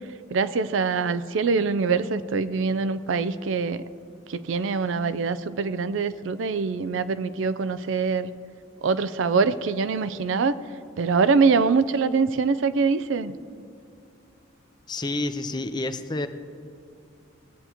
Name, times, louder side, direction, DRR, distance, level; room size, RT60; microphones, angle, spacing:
voice 1, 0.3-3.8 4.3-8.3 8.8-10.6 11.0-13.4, right 4 dB, 80° right, 13 dB, 0.4 m, -24 dB
voice 2, 14.9-16.3, left 2 dB, 20° left, 9 dB, 0.5 m, -29 dB
19.5 x 8.0 x 3.0 m, 2.5 s
head